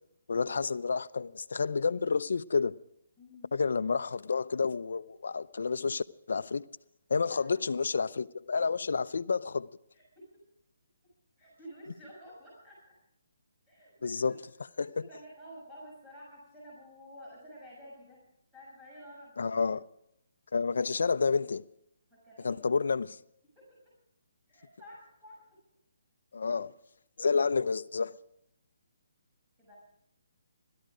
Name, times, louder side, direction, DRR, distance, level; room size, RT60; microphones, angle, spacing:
voice 1, 0.3-2.7 3.5-6.6 7.1-9.7 14.0-14.3 14.8-14.9 19.4-19.8 20.5-21.6 22.4-23.2 26.3-26.7 27.2-28.1, left 5 dB, 75° left, 0.6 m, -29 dB
voice 2, 3.2-3.5 7.3-7.7 9.9-10.4 11.4-12.8 13.7-14.4 14.8-18.2 18.5-19.5 22.1-22.6 23.5-23.8 24.5-25.4 29.6-29.8, equal, 10° right, 6.4 m, -51 dB
17.0 x 13.0 x 5.0 m
hypercardioid pair, 155°, 0 cm